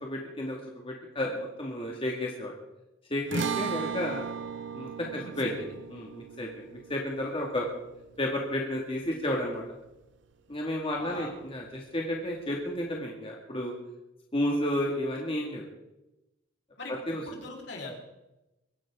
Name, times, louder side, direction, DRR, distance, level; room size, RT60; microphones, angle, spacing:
voice 1, 0.0-2.5 3.1-4.3 4.7-5.5 5.9-7.7 8.2-9.6 10.5-13.7 14.3-15.6 17.1-17.2, left 1 dB, 30° left, -1 dB, 2.2 m, -32 dB
sound 1, 3.3-9.8, right 6 dB, 70° right, 1.1 m, -37 dB
voice 2, 5.0-5.7 11.0-11.3 16.8-17.0 17.3-17.9, left 2 dB, 65° left, -1 dB, 4.3 m, -41 dB
23.5 x 12.0 x 3.8 m, 0.95 s
head